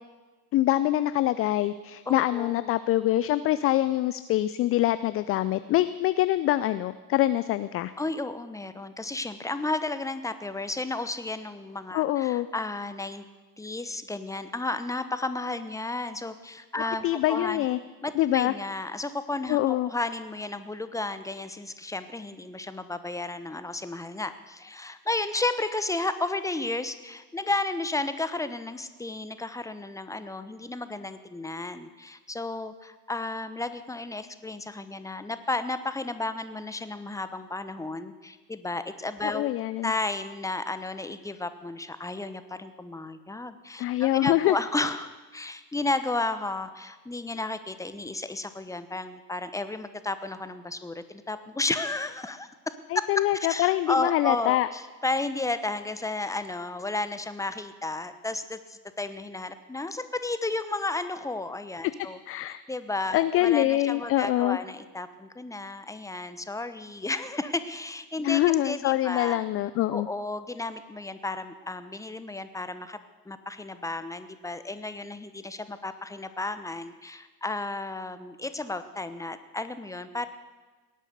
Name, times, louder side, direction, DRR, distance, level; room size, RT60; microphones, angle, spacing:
voice 1, 0.5-7.9 11.9-12.5 17.0-17.8 18.2-18.5 19.5-19.9 39.2-39.9 43.8-44.6 52.9-54.7 62.3-62.6 63.1-64.6 68.2-70.1, left 15 dB, 30° left, 14 dB, 0.4 m, -24 dB
voice 2, 2.1-2.7 8.0-13.2 13.6-17.7 18.0-39.5 39.8-53.0 53.3-62.2 62.7-69.4 69.9-73.0 73.2-80.3, left 2 dB, 5° left, 11 dB, 1.0 m, -33 dB
18.0 x 11.0 x 6.7 m, 1.3 s
figure-of-eight pair, 65°, 49 cm